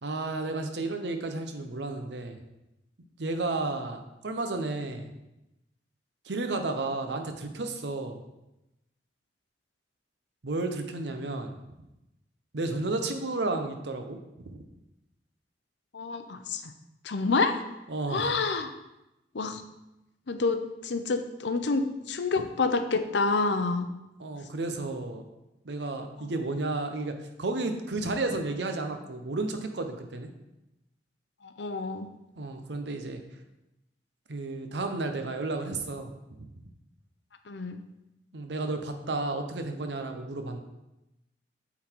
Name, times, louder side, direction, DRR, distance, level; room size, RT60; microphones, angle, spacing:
voice 1, 0.0-2.4 3.2-5.1 6.2-8.2 10.4-11.5 12.5-14.2 14.4-14.6 17.9-18.3 24.2-25.2 25.6-30.3 32.4-33.2 34.3-36.1 36.4-36.5 38.3-40.6, right 2 dB, 70° right, 6 dB, 0.8 m, -32 dB
voice 2, 15.9-16.7 17.0-17.6 18.1-18.7 19.3-19.6 20.3-23.9 26.2-26.3 31.4-32.1 37.5-37.8, left 3 dB, 75° left, 9 dB, 0.6 m, -28 dB
8.3 x 4.0 x 4.5 m, 0.94 s
head